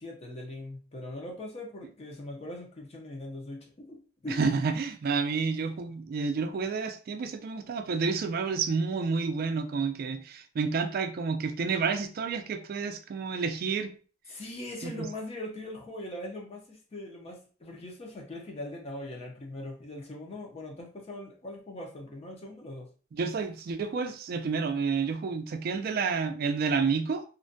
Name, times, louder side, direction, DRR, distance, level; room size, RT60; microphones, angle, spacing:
voice 1, 0.0-4.4 14.3-22.9, left 1 dB, 35° left, 0 dB, 0.5 m, -41 dB
voice 2, 4.3-13.9 14.8-14.9 23.1-27.2, right 5 dB, 55° right, 8 dB, 0.3 m, -30 dB
2.5 x 2.1 x 2.5 m, 0.38 s
head